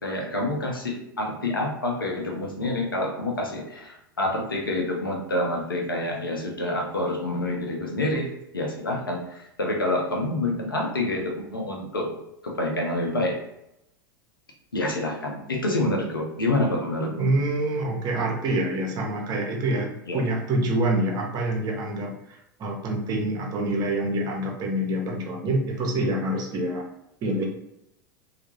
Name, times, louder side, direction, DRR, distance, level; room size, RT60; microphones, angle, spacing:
voice 1, 0.0-8.3 8.5-12.2 12.4-13.4 14.7-17.3 20.1-20.2, left 1 dB, 90° left, 0 dB, 0.6 m, -27 dB
voice 2, 17.1-26.8 27.2-27.5, right 1 dB, 35° right, 1 dB, 0.6 m, -26 dB
2.2 x 2.0 x 2.9 m, 0.83 s
figure-of-eight pair, 90°, 11 cm